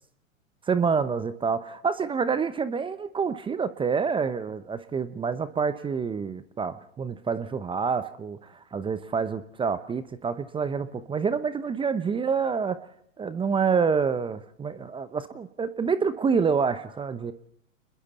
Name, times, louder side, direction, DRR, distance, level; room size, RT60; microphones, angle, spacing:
voice 1, 0.7-8.4 8.7-12.8 13.2-17.3, right 5 dB, 15° right, 13 dB, 0.8 m, -27 dB
29.5 x 21.5 x 4.2 m, 0.68 s
hypercardioid pair, 110°, 40 cm